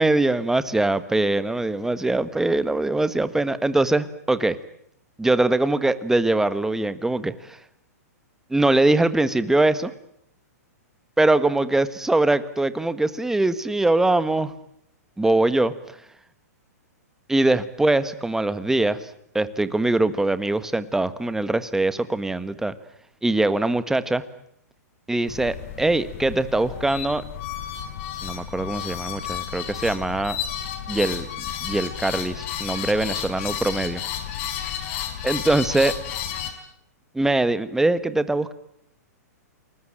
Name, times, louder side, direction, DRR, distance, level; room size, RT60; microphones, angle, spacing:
voice 1, 0.0-4.6 5.2-7.6 8.5-9.9 11.2-14.5 15.2-15.7 17.3-19.1 19.3-22.7 23.2-24.2 25.1-27.2 28.2-30.4 30.9-34.0 35.2-35.9 37.1-38.5, right 2 dB, 5° right, 13 dB, 1.4 m, -22 dB
sound 1, 25.3-36.5, left 10 dB, 50° left, 4.9 m, -32 dB
30.0 x 20.5 x 8.9 m, 0.73 s
hypercardioid pair, 130°, 9 cm